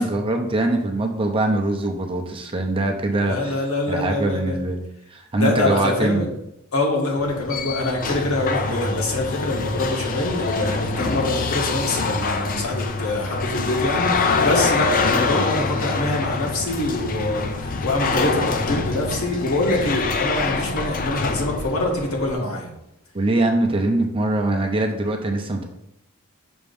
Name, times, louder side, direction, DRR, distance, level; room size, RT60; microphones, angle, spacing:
voice 1, 0.0-4.8 5.1-6.3 23.1-25.7, right 2 dB, 25° right, 3 dB, 0.6 m, -23 dB
voice 2, 3.1-4.6 5.4-6.3 6.7-22.7, left 2 dB, 70° left, -1 dB, 1.5 m, -24 dB
sound 1, 7.2-22.3, left 4 dB, 40° left, 0.5 m, -25 dB
6.2 x 2.9 x 5.2 m, 0.81 s
head